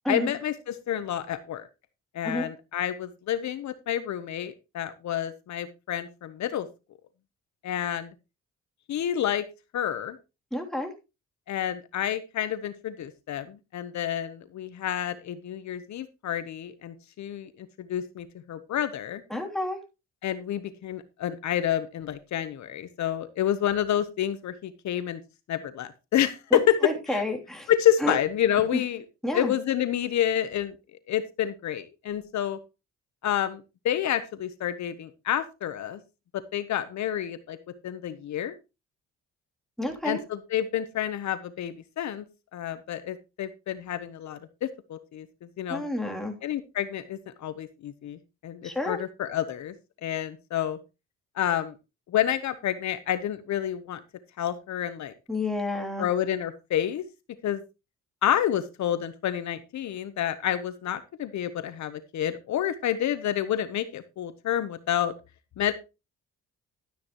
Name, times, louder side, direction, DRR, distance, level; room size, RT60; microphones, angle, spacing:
voice 1, 0.1-1.7 2.1-6.7 7.6-8.1 8.9-9.4 9.7-10.2 11.5-19.2 20.2-25.2 25.5-27.2 27.7-29.0 29.3-30.7 31.1-32.6 33.2-36.0 36.3-37.6 37.8-38.5 40.0-42.2 42.5-45.3 45.6-45.8 46.4-49.7 50.0-50.8 51.4-51.7 52.1-54.0 54.4-55.1 56.0-57.0 57.4-57.6 58.2-65.1 65.6-65.7, left 10 dB, 65° left, 12 dB, 1.0 m, -29 dB
voice 2, 10.5-10.9 19.3-19.8 26.5-27.7 28.0-28.2 28.7-28.8 29.2-29.5 39.8-40.2 45.7-46.4 48.6-49.0 55.3-56.0, left 1 dB, ahead, 1 dB, 3.2 m, -30 dB
12.5 x 9.4 x 3.1 m, 0.27 s
cardioid pair, 90°, 30 cm